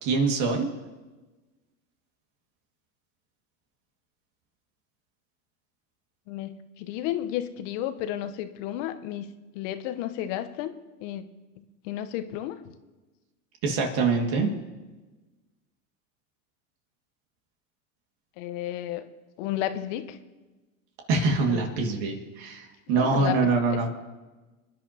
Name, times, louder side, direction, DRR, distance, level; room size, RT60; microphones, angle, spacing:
voice 1, 0.0-0.7 13.6-14.5 21.1-23.9, right 4 dB, 55° right, 2 dB, 2.2 m, -24 dB
voice 2, 6.3-10.7 11.0-11.2 11.6-12.6 18.4-19.1 19.4-20.2 21.5-21.7 22.9-23.8, left 12 dB, 55° left, 9 dB, 1.1 m, -33 dB
27.0 x 10.5 x 2.9 m, 1.2 s
hypercardioid pair, 95°, 44 cm